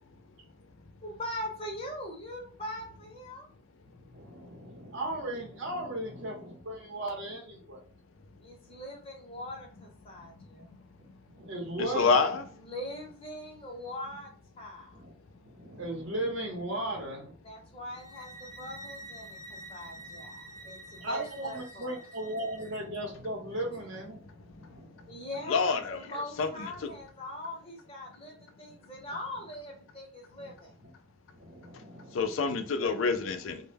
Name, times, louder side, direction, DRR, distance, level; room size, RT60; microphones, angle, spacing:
voice 1, 1.0-3.5 8.4-10.7 12.6-14.3 14.6-15.0 17.4-22.0 25.1-30.7, left 1 dB, 25° left, 0.7 m, -41 dB
voice 2, 4.1-7.8 11.3-12.1 14.9-15.1 15.4-17.3 20.0-20.1 20.6-25.3 30.4-30.5 30.8-30.9 31.3-32.9, right 1 dB, 60° right, 0.8 m, -37 dB
voice 3, 11.8-12.4 25.5-26.0 26.4-26.5 26.8-26.9 32.1-33.6, left 4 dB, 70° left, 0.4 m, -27 dB
sound 1, 17.9-22.8, right 1 dB, 15° right, 0.4 m, -48 dB
2.1 x 2.0 x 3.1 m
head